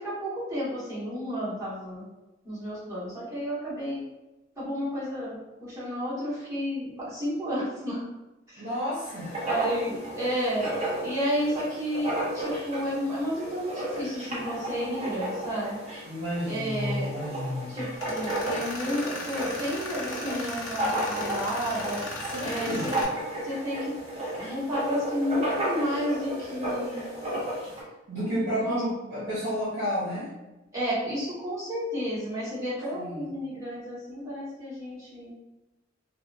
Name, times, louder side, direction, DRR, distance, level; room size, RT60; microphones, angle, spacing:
voice 1, 0.0-2.1 2.4-4.0 4.6-5.3 5.6-8.0 8.5-8.6 9.4-10.7 11.0-15.8 16.4-17.1 17.7-22.0 22.4-22.9 23.4-23.9 24.4-27.0 28.2-28.8 30.7-35.3, equal, 15° right, -9 dB, 1.1 m, -31 dB
voice 2, 8.6-9.4 16.1-17.8 22.2-22.9 28.1-30.3 32.9-33.3, equal, 65° right, -8 dB, 0.7 m, -31 dB
Writing, 9.0-27.8, right 1 dB, 30° right, 0.7 m, -33 dB
Tools, 18.0-23.0, left 2 dB, 75° left, 0.7 m, -37 dB
2.8 x 2.0 x 2.4 m, 1.0 s
head